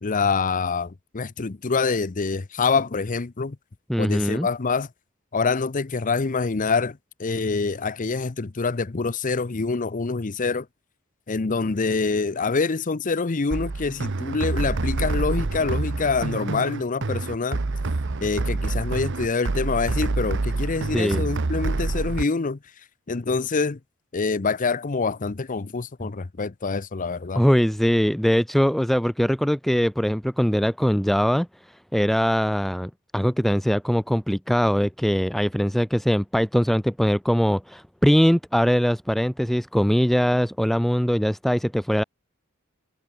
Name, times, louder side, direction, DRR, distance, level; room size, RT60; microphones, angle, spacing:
voice 1, 0.0-3.6 4.0-4.9 5.3-10.7 11.3-17.6 18.2-22.6 23.1-23.8 24.1-27.4, left 4 dB, 40° left, 0.7 m, -25 dB
voice 2, 3.9-4.5 20.9-21.3 27.4-42.0, equal, ahead, 0.4 m, -22 dB
sound 1, 13.5-22.2, right 3 dB, 60° right, 0.8 m, -27 dB
head